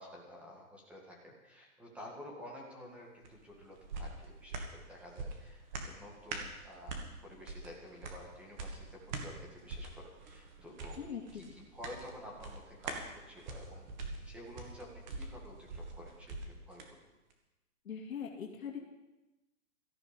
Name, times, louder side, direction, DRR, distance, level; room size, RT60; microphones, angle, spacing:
voice 1, 0.0-11.0 11.3-17.0, left 1 dB, 5° right, -2 dB, 2.0 m, -51 dB
sound 1, 3.2-16.9 17.3-17.4, right 3 dB, 30° right, 1.9 m, -45 dB
voice 2, 11.0-11.6 17.8-18.8, left 7 dB, 65° left, 1 dB, 2.7 m, -42 dB
17.0 x 13.5 x 5.4 m, 1.0 s
hypercardioid pair, 165°, 45 cm